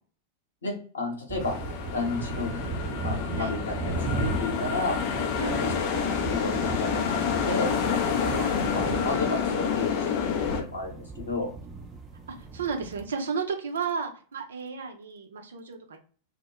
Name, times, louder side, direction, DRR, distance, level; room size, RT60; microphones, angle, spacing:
voice 1, 0.6-1.6 1.9-2.7 3.0-5.0 5.6-7.7 8.2-8.4 8.7-11.5, left 3 dB, 70° left, 1 dB, 0.9 m, -32 dB
sound 1, 1.3-13.1, right 4 dB, 15° right, 0.6 m, -36 dB
sound 2, 1.4-10.6, left 7 dB, 45° left, 0.5 m, -28 dB
voice 2, 5.4-5.8 8.3-8.6 12.3-16.0, right 5 dB, 65° right, 4 dB, 0.5 m, -33 dB
2.1 x 2.1 x 2.9 m, 0.43 s
figure-of-eight pair, 90°, 0 cm